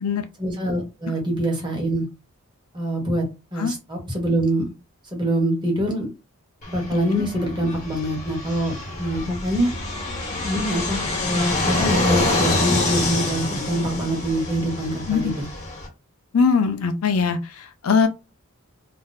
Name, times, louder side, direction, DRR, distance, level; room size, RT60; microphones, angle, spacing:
voice 1, 0.4-2.1 2.7-3.2 3.5-4.6 5.1-6.1 6.7-9.7 10.4-15.4, right 1 dB, 20° right, 1.1 m, -24 dB
Fixed-wing aircraft airplane, 6.6-15.9, left 2 dB, 35° left, 1.1 m, -26 dB
voice 2, 16.3-18.1, left 5 dB, 75° left, 0.4 m, -21 dB
2.5 x 2.1 x 3.9 m
head